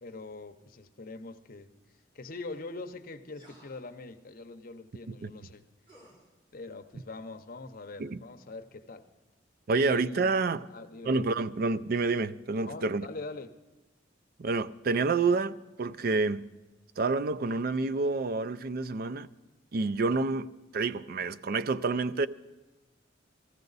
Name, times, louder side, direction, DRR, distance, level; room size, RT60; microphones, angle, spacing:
voice 1, 0.0-1.7 2.1-5.6 6.5-9.1 9.8-10.3 10.7-11.5 12.6-13.6, left 3 dB, 50° left, 0.7 m, -43 dB
sound 1, 3.3-3.9 5.9-6.3, equal, 30° right, 3.4 m, -57 dB
voice 2, 9.7-10.7 11.0-13.1 14.4-16.4 17.0-19.3 19.7-22.3, right 3 dB, 50° right, 0.4 m, -28 dB
15.5 x 15.0 x 4.0 m
head